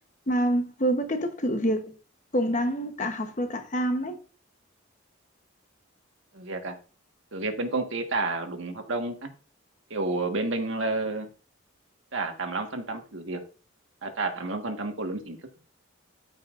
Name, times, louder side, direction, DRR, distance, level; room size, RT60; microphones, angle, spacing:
voice 1, 0.3-1.9 2.3-4.2, equal, 35° left, 0.9 m, -26 dB
voice 2, 6.3-6.7 7.3-9.3 9.9-11.3 12.1-13.4 14.0-15.4, right 3 dB, 65° right, 1.4 m, -30 dB
13.0 x 5.7 x 2.5 m
head